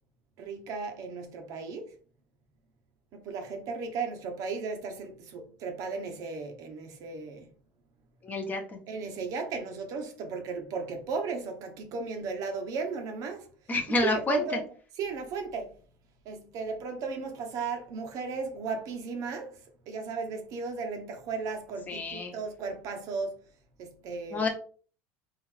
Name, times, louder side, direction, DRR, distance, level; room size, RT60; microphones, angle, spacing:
voice 1, 0.4-1.9 3.1-7.5 8.9-13.5 14.0-14.6 15.0-15.7 16.2-19.5 19.9-23.3 23.8-24.5, right 4 dB, 60° right, 0.9 m, -35 dB
voice 2, 8.2-8.8 13.7-14.4 21.9-22.3 24.3-24.5, left 3 dB, 25° left, 1.0 m, -29 dB
3.7 x 2.5 x 3.3 m
supercardioid pair, 105°, 6 cm